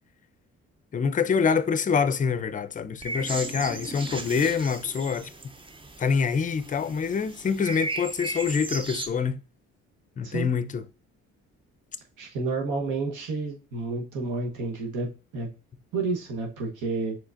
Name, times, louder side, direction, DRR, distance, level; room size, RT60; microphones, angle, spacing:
voice 1, 0.9-5.3 6.0-9.4 10.2-10.8, left 6 dB, 25° left, 0.4 m, -25 dB
sound 1, 3.0-9.1, right 2 dB, 15° right, 0.6 m, -36 dB
voice 2, 12.2-15.1 15.3-15.5 15.9-17.2, right 3 dB, 80° right, 1.1 m, -30 dB
4.8 x 3.7 x 2.5 m
cardioid pair, 90°, 30 cm